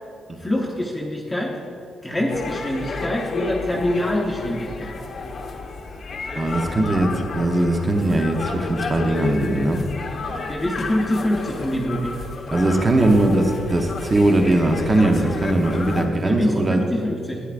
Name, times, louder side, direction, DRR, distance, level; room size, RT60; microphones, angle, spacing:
voice 1, 0.4-1.5 2.0-4.9 10.5-12.1 16.2-17.4, left 1 dB, 10° left, -2 dB, 0.8 m, -25 dB
sound 1, 2.3-16.0, left 3 dB, 50° left, 0.9 m, -31 dB
voice 2, 6.4-9.8 12.5-16.8, right 1 dB, 25° right, 3 dB, 0.8 m, -20 dB
11.5 x 9.8 x 2.5 m, 2.5 s
cardioid pair, 115°, 0 cm